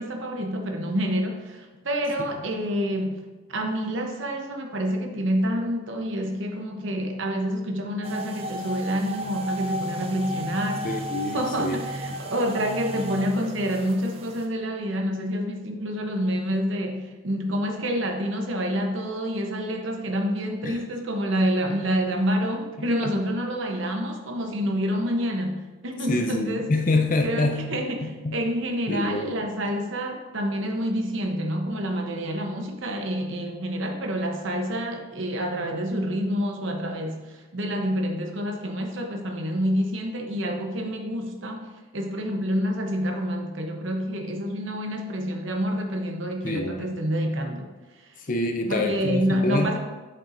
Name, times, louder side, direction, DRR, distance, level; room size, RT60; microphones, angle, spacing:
voice 1, 0.0-3.2 3.5-10.9 11.3-26.7 27.2-47.7 48.1-48.2 48.7-49.8, equal, 60° right, 4 dB, 0.8 m, -28 dB
sound 1, 8.0-14.5, equal, 30° right, 0.4 m, -33 dB
voice 2, 10.8-11.8 12.9-13.0 20.6-20.8 23.0-23.1 26.1-28.4 28.9-29.3 46.4-46.9 48.2-49.7, left 2 dB, 40° left, 4 dB, 0.5 m, -26 dB
7.1 x 5.4 x 2.5 m, 1.2 s
head